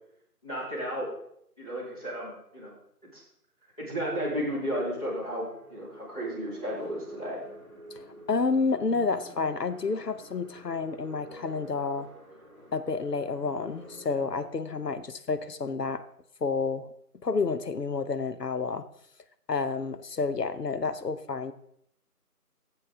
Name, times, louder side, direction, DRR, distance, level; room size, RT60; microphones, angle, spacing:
voice 1, 0.4-1.1 1.6-2.7 3.1-3.2 3.8-7.4, equal, 25° left, -9 dB, 2.4 m, -33 dB
sound 1, 3.7-3.8 4.9-14.5, right 1 dB, 20° right, 1.5 m, -48 dB
voice 2, 7.9-12.1 12.7-16.0 16.4-16.9 17.2-18.9 19.5-21.5, left 4 dB, 85° left, 11 dB, 0.9 m, -30 dB
12.0 x 7.5 x 3.7 m, 0.72 s
figure-of-eight pair, 170°, 47 cm